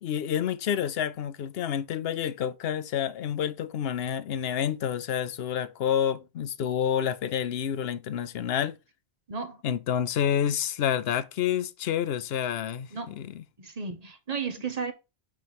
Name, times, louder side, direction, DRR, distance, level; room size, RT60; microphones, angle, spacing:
voice 1, 0.0-8.8 9.6-13.4, left 9 dB, 70° left, 0.9 m, -29 dB
voice 2, 9.3-9.6 12.9-13.2 13.6-14.9, right 5 dB, 40° right, 1.0 m, -34 dB
8.6 x 3.2 x 5.8 m
omnidirectional pair, 1.1 m